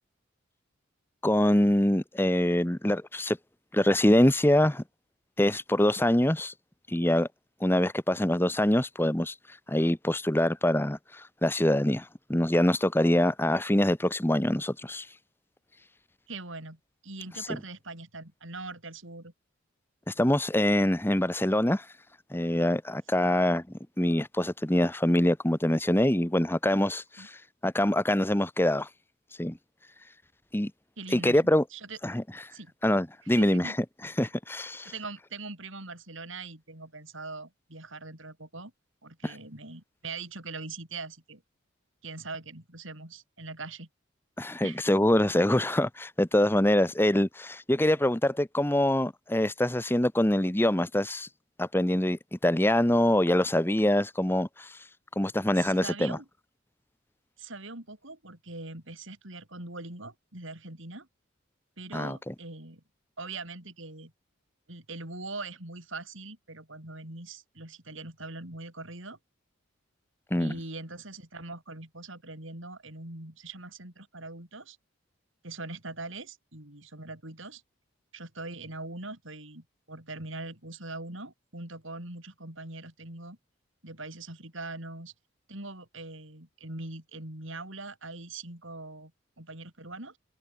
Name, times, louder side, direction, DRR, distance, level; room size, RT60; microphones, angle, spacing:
voice 1, 1.2-3.4 3.7-4.8 5.4-6.5 6.9-7.3 7.6-9.3 9.7-15.1 17.4-17.5 20.1-21.8 22.3-23.6 24.0-28.9 29.4-29.6 30.5-30.7 31.1-31.6 32.0-32.2 32.8-33.7 34.0-34.9 39.2-39.3 44.4-51.3 51.6-54.8 55.2-56.2 61.9-62.3 70.3-70.6, left 1 dB, 10° left, 1.0 m, -25 dB
voice 2, 16.3-19.3 23.2-23.3 27.2-27.3 31.0-32.0 32.5-32.7 33.2-33.8 34.8-38.7 39.0-41.4 42.0-43.9 44.6-44.8 55.5-56.3 57.4-61.1 61.8-62.8 63.2-64.1 64.7-69.2 70.4-74.8 75.4-77.6 78.1-83.4 83.8-85.1 85.5-89.1 89.4-90.2, right 3 dB, 65° right, 5.7 m, -42 dB
head